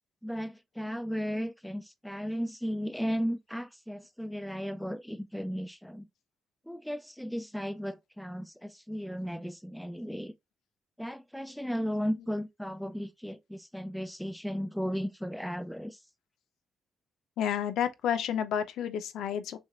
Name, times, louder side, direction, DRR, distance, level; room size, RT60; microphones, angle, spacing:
voice 1, 0.2-6.1 6.7-10.3 11.0-16.0, equal, ahead, 0.3 m, -35 dB
voice 2, 17.4-19.6, left 9 dB, 85° left, 0.7 m, -31 dB
6.3 x 2.4 x 3.1 m
cardioid pair, 160°, 0 cm